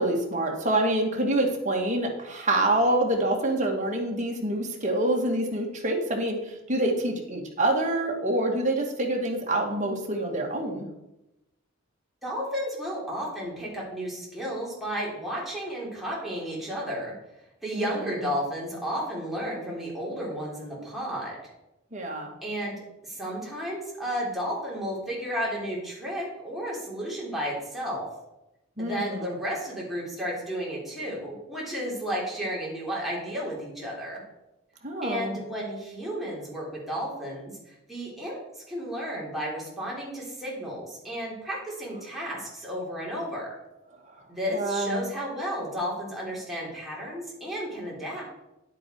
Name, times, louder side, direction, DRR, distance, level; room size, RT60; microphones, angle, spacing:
voice 1, 0.0-10.9 17.7-18.1 21.9-22.3 28.8-29.3 34.8-35.4 44.5-45.0, right 1 dB, 35° right, 0 dB, 2.1 m, -26 dB
voice 2, 12.2-17.1 17.6-21.5 22.4-28.1 28.8-34.2 35.0-43.5 44.3-48.2, equal, ahead, -5 dB, 3.7 m, -33 dB
10.5 x 8.3 x 4.7 m, 0.93 s
head